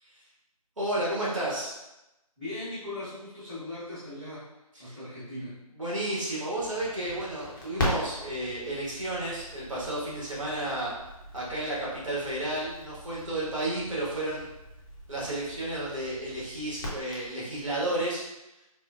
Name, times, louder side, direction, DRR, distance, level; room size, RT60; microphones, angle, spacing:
voice 1, 0.8-1.8 4.9-5.0 5.8-10.9 11.3-14.4 15.1-18.2, right 1 dB, 55° right, -6 dB, 1.3 m, -32 dB
voice 2, 2.4-4.5 4.8-5.6, left 1 dB, 5° right, -22 dB, 0.7 m, -39 dB
Crackle, 6.6-17.8, left 1 dB, 35° left, 0.7 m, -39 dB
4.3 x 2.0 x 2.3 m, 0.95 s
figure-of-eight pair, 160°, 19 cm